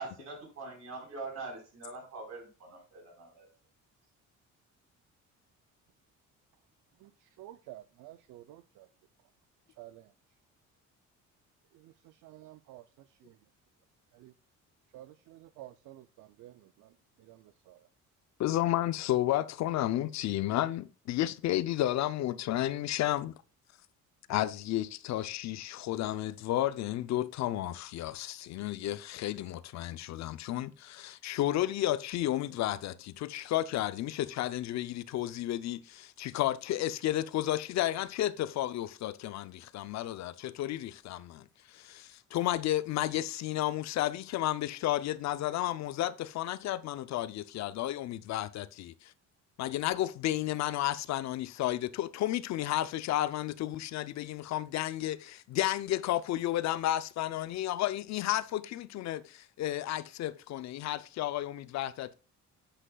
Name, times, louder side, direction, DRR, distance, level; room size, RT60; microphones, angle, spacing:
voice 1, 0.0-3.4, right 3 dB, 60° right, 4.1 m, -43 dB
voice 2, 7.0-8.9 9.8-10.1 11.7-13.4 14.1-14.3 14.9-16.9 17.2-17.9, right 14 dB, 75° right, 0.5 m, -52 dB
voice 3, 18.4-23.3 24.3-49.1 49.6-62.1, left 13 dB, 60° left, 0.5 m, -32 dB
9.9 x 7.9 x 2.3 m
cardioid pair, 150°, 31 cm